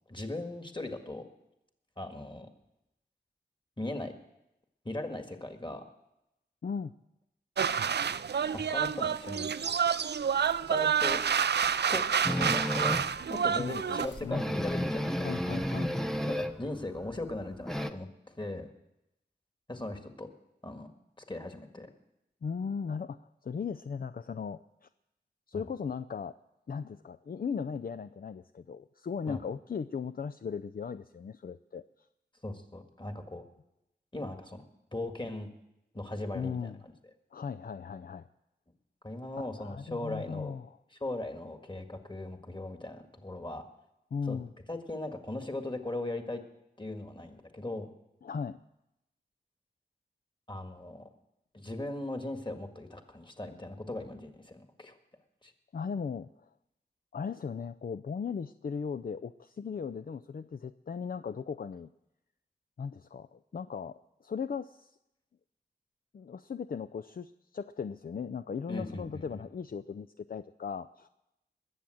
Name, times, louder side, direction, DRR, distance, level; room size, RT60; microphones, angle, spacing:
voice 1, 0.1-1.2 2.0-2.5 3.8-4.1 4.9-5.8 8.5-9.5 10.7-11.2 11.9-13.0 13.3-15.3 16.3-18.7 19.7-20.3 20.6-20.9 21.2-21.9 25.5-25.7 29.3-29.4 32.4-33.4 34.1-34.6 34.9-35.5 35.9-36.7 39.0-40.5 40.9-43.6 44.2-44.4 44.7-46.4 46.8-47.9 50.5-51.1 51.5-55.0 55.4-55.5 68.7-69.4, left 2 dB, 25° left, 6 dB, 1.8 m, -38 dB
voice 2, 6.6-7.0 13.6-14.5 15.2-15.9 22.4-24.9 25.5-26.4 26.7-31.8 36.3-36.8 37.3-38.3 39.4-40.8 44.1-44.5 48.2-48.6 55.7-56.5 57.1-61.9 62.8-65.0 66.1-71.1, left 6 dB, 55° left, 11 dB, 0.4 m, -37 dB
sound 1, 7.6-14.1, right 7 dB, 70° right, 0.4 m, -28 dB
sound 2, 10.0-15.2, left 2 dB, 80° left, 2.0 m, -56 dB
sound 3, 12.2-13.2 13.7-13.8 14.0-14.1 14.3-16.6 17.0-17.9, equal, ahead, 0.8 m, -32 dB
20.5 x 7.3 x 7.7 m, 0.90 s
wide cardioid pair, 45°, 18 cm